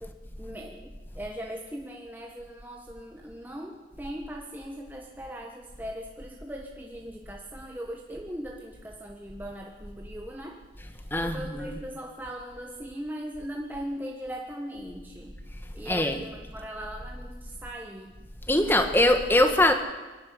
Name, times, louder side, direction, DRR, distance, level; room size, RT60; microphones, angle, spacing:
voice 1, 0.0-10.6 11.2-15.4 15.7-18.1, equal, 10° right, 0 dB, 1.4 m, -39 dB
voice 2, 11.1-11.7 15.9-16.2 18.5-19.7, left 1 dB, 10° left, 7 dB, 1.6 m, -22 dB
22.5 x 12.5 x 9.5 m, 1.2 s
head